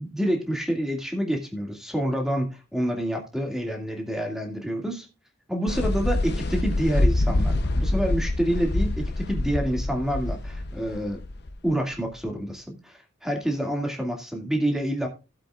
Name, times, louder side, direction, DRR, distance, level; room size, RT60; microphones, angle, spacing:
voice 1, 0.0-5.1 5.5-11.2 11.6-15.1, equal, ahead, 2 dB, 2.1 m, -28 dB
sound 1, 5.7-12.3, left 2 dB, 55° left, 0.7 m, -26 dB
16.0 x 7.8 x 2.4 m, 0.29 s
head